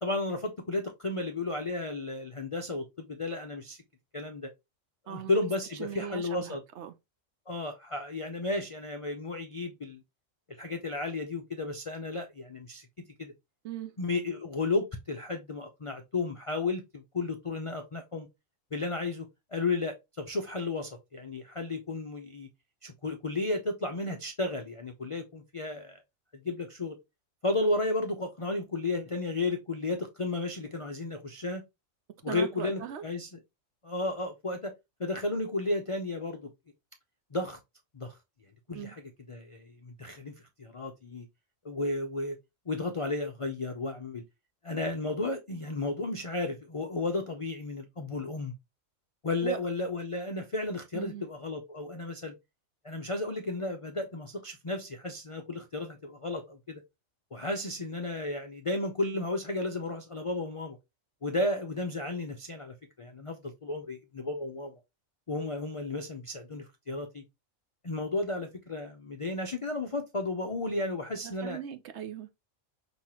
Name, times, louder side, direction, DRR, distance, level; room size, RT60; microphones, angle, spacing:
voice 1, 0.0-3.8 4.1-4.5 5.1-6.6 7.5-10.0 10.6-12.9 13.2-13.3 14.0-18.3 18.7-22.5 22.8-26.0 26.3-27.0 27.4-31.6 32.2-33.3 33.8-34.7 35.0-36.5 37.3-37.6 37.9-38.2 38.7-39.0 39.3-40.3 40.6-41.3 41.6-42.4 42.7-44.2 44.6-48.5 49.2-52.3 52.8-56.8 57.3-60.8 61.2-64.8 65.3-67.2 67.8-71.6, left 2 dB, 50° left, 0.4 m, -33 dB
voice 2, 5.1-5.4 5.8-6.9 13.6-13.9 32.3-33.0 38.7-38.9 49.4-49.6 50.9-51.2 71.2-72.3, right 10 dB, 65° right, 0.8 m, -39 dB
5.6 x 3.0 x 2.9 m
omnidirectional pair, 1.4 m